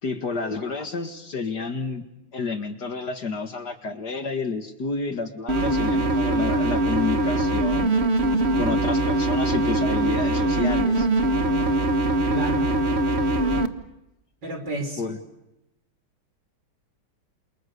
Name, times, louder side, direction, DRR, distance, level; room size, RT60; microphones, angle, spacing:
voice 1, 0.0-2.1 2.3-7.9 8.5-11.1 15.0-15.2, left 4 dB, 50° left, 8 dB, 2.3 m, -30 dB
sound 1, 5.5-13.7, right 1 dB, 35° right, 1.5 m, -22 dB
voice 2, 12.3-12.7 14.4-15.0, right 2 dB, 50° right, 5 dB, 6.1 m, -30 dB
28.5 x 28.5 x 6.9 m, 0.90 s
omnidirectional pair, 2.4 m